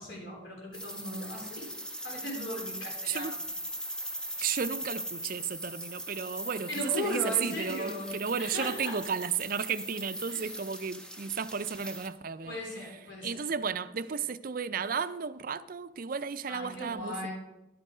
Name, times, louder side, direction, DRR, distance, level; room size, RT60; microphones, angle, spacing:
voice 1, 0.0-1.7 2.0-3.4 4.4-4.6 6.7-9.0 10.3-10.5 12.4-13.4 16.5-17.3, left 1 dB, 65° left, 4.2 m, -38 dB
sound 1, 0.7-12.1, right 1 dB, 5° left, 0.6 m, -40 dB
voice 2, 3.0-3.4 4.4-12.6 13.2-17.3, right 6 dB, 45° right, 0.4 m, -33 dB
11.5 x 7.6 x 5.0 m
head